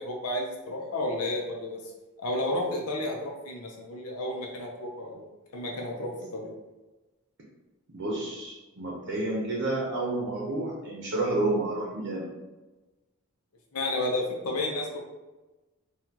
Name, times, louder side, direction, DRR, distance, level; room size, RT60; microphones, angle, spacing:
voice 1, 0.0-1.8 2.2-5.2 5.5-6.5 13.7-15.0, left 1 dB, 85° left, 0 dB, 0.8 m, -31 dB
voice 2, 7.9-12.3, right 2 dB, 55° right, -3 dB, 0.7 m, -30 dB
4.2 x 2.4 x 2.9 m, 1.1 s
head